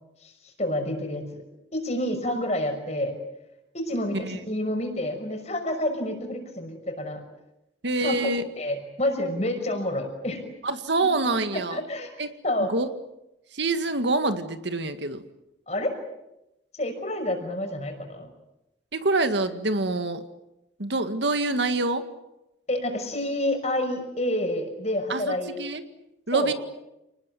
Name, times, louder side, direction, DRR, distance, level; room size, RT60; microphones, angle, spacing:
voice 1, 0.2-1.4 1.7-3.2 3.7-7.2 8.0-8.3 8.6-10.5 11.5-12.1 12.4-12.7 15.7-16.0 16.7-18.3 22.7-25.6 26.3-26.5, left 1 dB, 35° left, 4 dB, 6.0 m, -28 dB
voice 2, 7.8-8.4 10.6-11.8 12.2-12.3 12.7-12.9 13.5-15.2 18.9-20.2 20.8-22.1 25.1-25.8 26.3-26.5, right 2 dB, 70° right, 8 dB, 1.9 m, -26 dB
30.0 x 20.0 x 9.2 m, 0.93 s
head